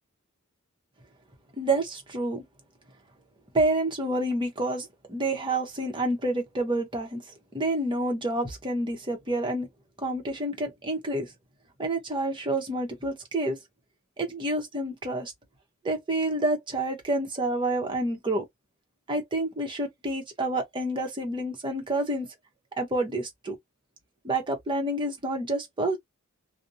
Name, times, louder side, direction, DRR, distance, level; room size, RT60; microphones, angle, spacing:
voice 1, 1.6-2.4 3.5-7.2 7.5-9.7 10.0-11.3 11.8-13.6 14.2-15.3 15.8-18.4 19.1-22.3 22.8-23.6 24.2-26.0, right 2 dB, 25° right, 0.8 m, -28 dB
2.5 x 2.0 x 2.6 m
head